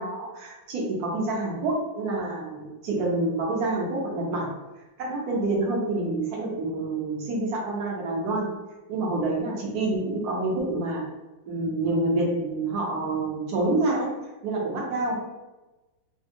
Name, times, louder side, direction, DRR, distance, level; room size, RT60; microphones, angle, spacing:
voice 1, 0.0-4.5 5.0-8.5 8.9-11.0 11.5-14.1 14.4-15.2, right 2 dB, 65° right, -3 dB, 1.0 m, -27 dB
3.4 x 2.1 x 2.6 m, 1.1 s
omnidirectional pair, 2.2 m